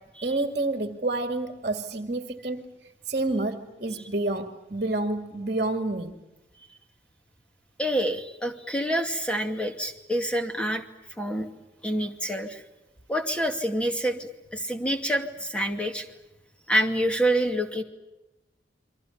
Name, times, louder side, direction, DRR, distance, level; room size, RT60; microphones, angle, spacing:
voice 1, 0.2-2.7 3.1-6.1, right 2 dB, 40° right, 7 dB, 2.2 m, -29 dB
voice 2, 7.8-10.8 11.2-11.5 11.8-12.6 13.1-16.0 16.7-17.8, equal, 5° left, 4 dB, 2.4 m, -27 dB
29.5 x 24.0 x 7.2 m, 1.0 s
head